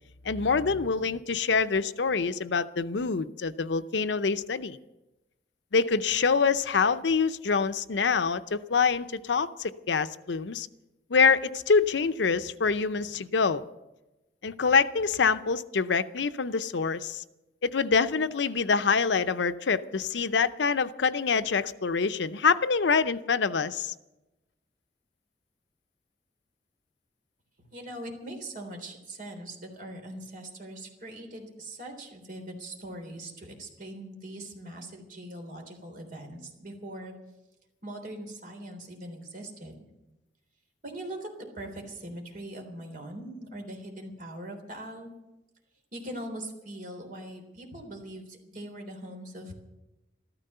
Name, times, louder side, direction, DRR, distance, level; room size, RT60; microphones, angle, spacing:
voice 1, 0.2-4.8 5.7-10.7 11.1-13.6 14.4-17.2 17.6-23.9, left 5 dB, 80° left, 13 dB, 0.6 m, -25 dB
voice 2, 27.7-37.1 37.8-39.8 40.8-45.1 45.9-49.5, right 1 dB, 50° right, 3 dB, 3.6 m, -41 dB
14.0 x 14.0 x 6.7 m, 0.99 s
head